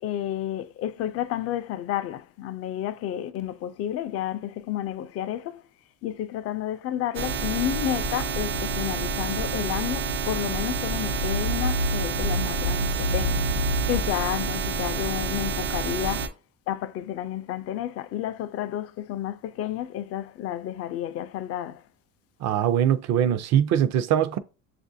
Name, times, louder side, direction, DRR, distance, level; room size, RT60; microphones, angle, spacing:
voice 1, 0.0-5.6 6.0-13.4 13.8-16.3 16.7-21.8, left 11 dB, 45° left, 0.4 m, -31 dB
sound 1, 7.1-16.3, right 5 dB, 90° right, 0.9 m, -29 dB
sound 2, 10.6-14.3, equal, 85° left, 0.7 m, -28 dB
voice 2, 22.4-24.4, right 10 dB, 50° right, 0.5 m, -22 dB
6.6 x 2.5 x 2.6 m
cardioid pair, 130°, 35 cm